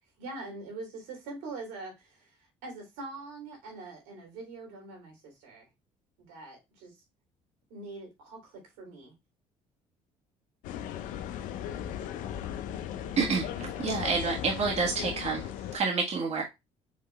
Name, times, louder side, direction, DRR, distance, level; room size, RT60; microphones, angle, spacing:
voice 1, 0.2-2.3 2.6-5.7 6.2-7.0 7.7-9.1, right 3 dB, 90° right, 2.6 m, -43 dB
sound 1, 10.6-15.8, left 10 dB, 75° left, 0.5 m, -37 dB
voice 2, 13.2-16.4, right 4 dB, 50° right, 1.5 m, -29 dB
5.0 x 3.1 x 3.2 m
supercardioid pair, 75°, 14 cm